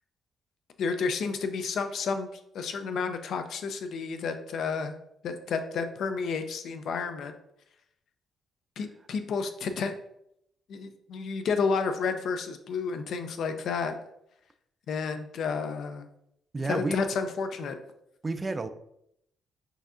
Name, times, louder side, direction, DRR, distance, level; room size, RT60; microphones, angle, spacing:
voice 1, 0.8-2.3 2.5-4.9 5.2-7.3 8.8-9.9 10.7-13.9 14.9-16.1 16.6-17.7, left 5 dB, 70° left, 7 dB, 0.4 m, -31 dB
voice 2, 16.5-17.0 18.2-18.7, right 3 dB, 25° right, 10 dB, 0.3 m, -30 dB
5.5 x 2.7 x 2.5 m, 0.76 s
cardioid pair, 90°, 0 cm